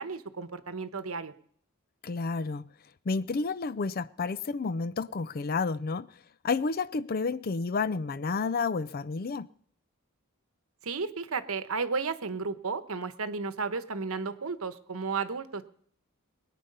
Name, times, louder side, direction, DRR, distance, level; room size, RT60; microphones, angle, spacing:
voice 1, 0.0-1.3 10.8-15.6, right 4 dB, 75° right, 1.0 m, -33 dB
voice 2, 2.0-2.7 3.1-6.1 6.4-9.5, left 4 dB, 45° left, 0.5 m, -30 dB
21.5 x 9.2 x 5.5 m
head